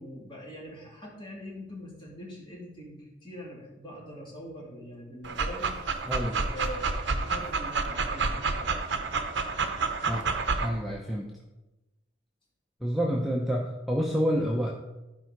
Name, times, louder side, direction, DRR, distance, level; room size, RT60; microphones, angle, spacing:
voice 1, 0.0-5.7 6.5-8.8, equal, 25° left, -4 dB, 2.6 m, -43 dB
Dog, 5.2-10.7, right 4 dB, 65° right, 0.8 m, -29 dB
voice 2, 6.1-6.4 10.1-10.3 10.6-11.3 12.8-14.7, equal, ahead, -3 dB, 0.7 m, -28 dB
11.5 x 4.9 x 4.6 m, 1.0 s
head